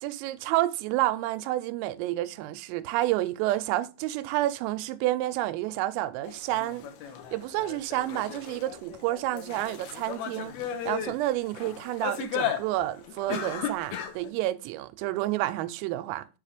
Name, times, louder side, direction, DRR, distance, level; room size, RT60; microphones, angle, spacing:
voice 1, 0.0-6.9 7.3-16.3, right 15 dB, 90° right, 3.3 m, -29 dB
sound 1, 6.2-14.3, left 9 dB, 90° left, 2.1 m, -35 dB
7.0 x 5.0 x 5.0 m
omnidirectional pair, 5.8 m